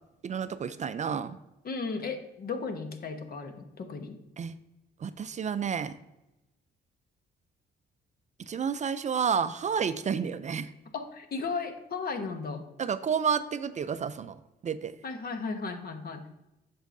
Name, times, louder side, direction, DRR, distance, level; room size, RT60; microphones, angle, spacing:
voice 1, 0.2-1.4 4.4-4.5 5.0-5.9 8.5-10.7 12.8-14.4 14.6-14.9, right 7 dB, 35° right, 12 dB, 0.4 m, -30 dB
voice 2, 1.6-4.2 10.9-12.6 15.0-16.3, left 4 dB, 50° left, 6 dB, 1.0 m, -35 dB
8.0 x 6.3 x 2.6 m, 0.95 s
cardioid pair, 90°, 20 cm